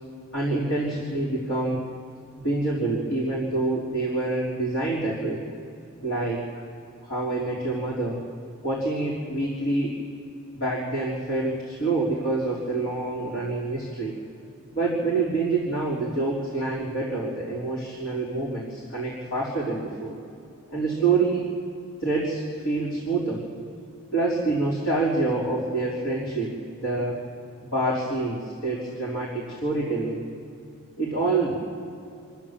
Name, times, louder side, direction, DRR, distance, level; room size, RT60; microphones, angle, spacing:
voice 1, 0.3-1.8 2.4-5.4 6.0-6.4 7.0-8.2 8.6-10.0 10.5-14.2 14.7-20.1 20.7-21.4 22.0-23.4 24.1-27.2 27.6-30.2 31.0-31.6, right 3 dB, 60° left, -5 dB, 3.8 m, -26 dB
26.5 x 13.5 x 7.4 m, 2.7 s
head